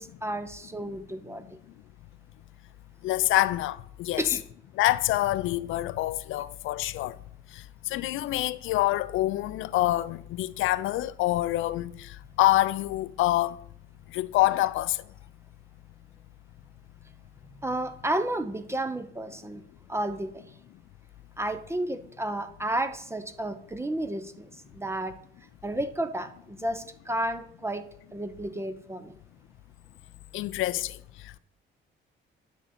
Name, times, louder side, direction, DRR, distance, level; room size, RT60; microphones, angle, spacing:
voice 1, 0.0-1.5 4.2-4.4 17.6-19.6 19.9-20.5 21.4-25.1 25.6-27.8 28.1-29.1, right 1 dB, 15° right, 0.7 m, -32 dB
voice 2, 3.0-4.2 4.7-7.2 7.5-13.6 14.1-15.0 30.3-31.0 31.2-31.4, left 16 dB, 85° left, 0.4 m, -26 dB
9.8 x 7.1 x 4.3 m
cardioid pair, 90°, 20 cm